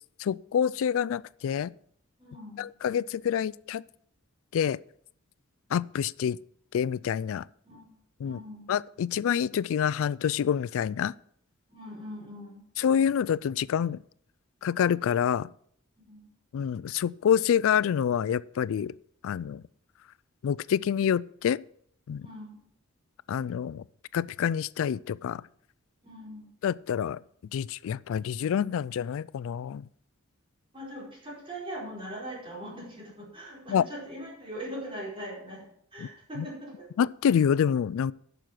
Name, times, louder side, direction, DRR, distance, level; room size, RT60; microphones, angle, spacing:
voice 1, 0.2-1.7 2.6-3.8 4.5-4.8 5.7-6.4 6.7-7.5 8.2-8.4 8.7-11.1 12.8-14.0 14.6-15.5 16.5-18.9 19.2-19.6 20.4-21.6 22.1-22.3 23.3-23.8 24.1-25.4 26.6-27.2 27.5-29.9 33.7-33.8 36.0-36.1 36.4-36.5 37.0-38.1, left 8 dB, 65° left, 0.3 m, -27 dB
voice 2, 2.2-2.6 7.6-7.9 8.2-8.7 11.7-12.6 16.0-16.3 22.2-22.6 26.0-26.5 30.7-36.9, equal, 25° right, 4.8 m, -41 dB
10.5 x 7.0 x 5.9 m
head